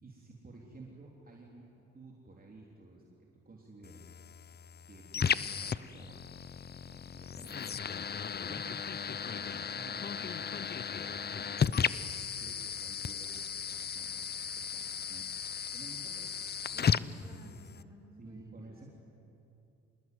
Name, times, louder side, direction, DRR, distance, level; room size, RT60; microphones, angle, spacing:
voice 1, 0.0-3.0 3.5-4.1 4.9-6.4 6.8-7.9 8.5-15.3 15.7-17.4 18.2-18.9, right 2 dB, 30° right, -2 dB, 3.5 m, -53 dB
sound 1, 3.8-17.8, left 7 dB, 35° left, 0.7 m, -35 dB
voice 2, 17.2-18.9, right 1 dB, 10° right, 1 dB, 5.3 m, -56 dB
26.5 x 20.5 x 9.5 m, 2.8 s
cardioid pair, 90°, 30 cm